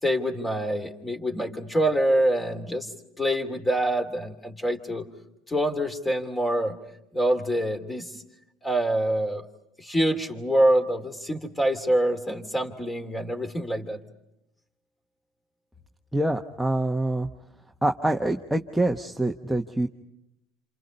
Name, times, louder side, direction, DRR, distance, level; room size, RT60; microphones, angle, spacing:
voice 1, 0.0-2.9 3.2-5.1 5.5-6.8 7.1-8.1 8.6-9.4 9.8-14.0, right 1 dB, 15° left, 6 dB, 3.1 m, -25 dB
voice 2, 16.1-17.3 17.8-19.9, right 1 dB, 5° right, 2 dB, 1.1 m, -25 dB
28.5 x 27.5 x 5.4 m, 0.86 s
supercardioid pair, 105°, 0 cm